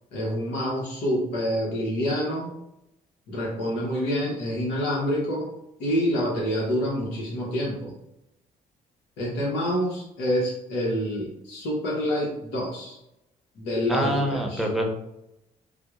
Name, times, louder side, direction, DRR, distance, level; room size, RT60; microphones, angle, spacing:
voice 1, 0.1-2.5 3.3-5.5 5.8-7.9 9.2-13.0 13.6-14.7, equal, 85° left, -4 dB, 0.9 m, -27 dB
voice 2, 13.9-14.9, equal, ahead, 1 dB, 0.7 m, -25 dB
5.9 x 2.1 x 2.4 m, 0.86 s
supercardioid pair, 60°, 17 cm